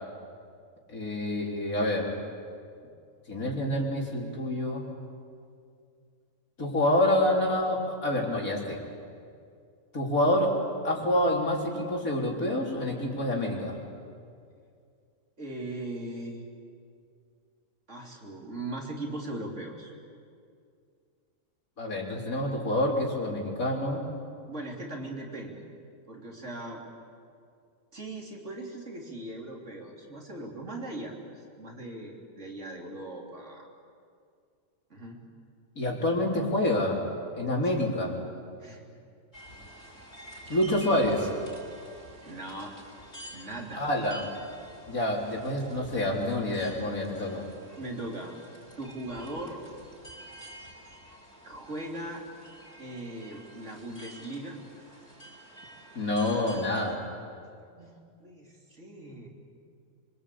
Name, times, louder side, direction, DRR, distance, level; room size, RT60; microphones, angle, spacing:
voice 1, 0.9-2.1 3.3-4.8 6.6-8.8 9.9-10.5 10.8-13.8 21.8-24.0 35.8-37.0 37.3-38.1 40.5-41.3 43.8-44.3 44.9-47.4 56.0-57.1, left 1 dB, 85° left, -1 dB, 4.3 m, -27 dB
voice 2, 15.4-16.4 17.9-19.9 24.5-25.6 26.1-26.8 27.9-31.2 31.6-33.7 34.9-35.2 38.6-38.8 42.3-42.7 43.3-43.8 47.8-48.3 48.8-49.6 51.4-52.2 52.8-54.6 57.7-59.3, right 1 dB, 60° right, -1 dB, 3.9 m, -39 dB
sound 1, 39.3-57.0, right 1 dB, 55° left, 6.0 m, -49 dB
26.0 x 24.0 x 8.6 m, 2.3 s
omnidirectional pair, 1.4 m